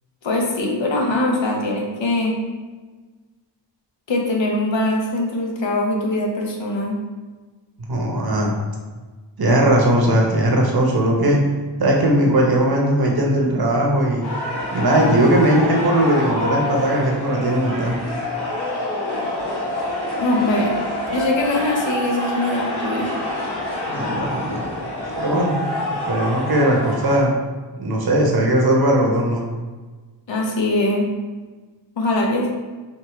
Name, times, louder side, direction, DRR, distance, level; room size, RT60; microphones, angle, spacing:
voice 1, 0.2-2.4 4.1-7.0 20.2-20.7 21.1-23.1 30.3-31.1 32.0-32.5, left 1 dB, 75° left, 0 dB, 0.9 m, -22 dB
voice 2, 7.9-8.5 9.4-11.4 11.8-14.3 14.7-18.0 23.8-24.6 25.2-25.6 26.1-27.3 27.8-29.4, right 1 dB, 55° right, -1 dB, 0.8 m, -18 dB
sound 1, 14.2-27.2, left 1 dB, 55° left, 1.3 m, -27 dB
4.6 x 2.6 x 3.0 m, 1.3 s
wide cardioid pair, 125°, 45 cm